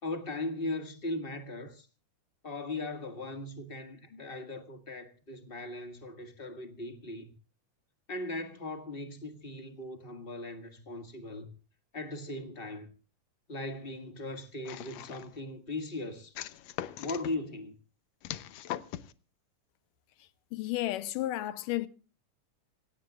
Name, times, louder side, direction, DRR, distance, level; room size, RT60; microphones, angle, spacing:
voice 1, 0.0-1.9 2.4-7.3 8.1-11.5 11.9-12.9 13.5-16.4 17.0-17.8, left 2 dB, 25° left, 1.5 m, -38 dB
sound 1, 14.7-15.4 16.4-17.3 18.2-19.1, left 12 dB, 70° left, 1.8 m, -40 dB
voice 2, 20.5-21.9, left 15 dB, 85° left, 2.5 m, -32 dB
26.5 x 16.5 x 2.4 m
omnidirectional pair, 3.7 m